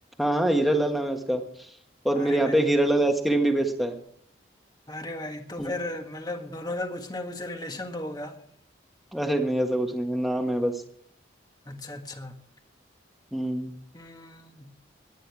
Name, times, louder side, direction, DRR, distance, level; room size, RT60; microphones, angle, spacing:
voice 1, 0.2-1.4 2.0-3.9 5.6-5.7 9.1-10.8 13.3-13.7, right 1 dB, ahead, 1.5 m, -24 dB
voice 2, 2.1-2.7 4.9-8.4 11.7-12.4 13.9-14.7, left 1 dB, 20° left, 1.6 m, -36 dB
20.5 x 10.0 x 4.8 m
head